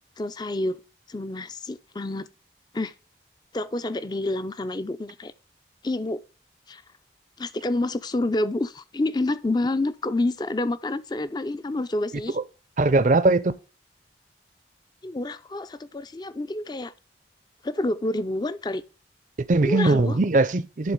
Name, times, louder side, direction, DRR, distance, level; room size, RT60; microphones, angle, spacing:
voice 1, 0.2-0.8 1.1-2.3 2.7-2.9 3.5-5.3 5.8-6.2 6.7-6.8 7.4-12.4 15.0-16.9 17.6-18.8 19.6-20.2, left 2 dB, 25° left, 0.4 m, -28 dB
voice 2, 12.8-13.6 19.5-20.9, right 2 dB, 45° right, 0.5 m, -20 dB
11.0 x 3.8 x 5.2 m
head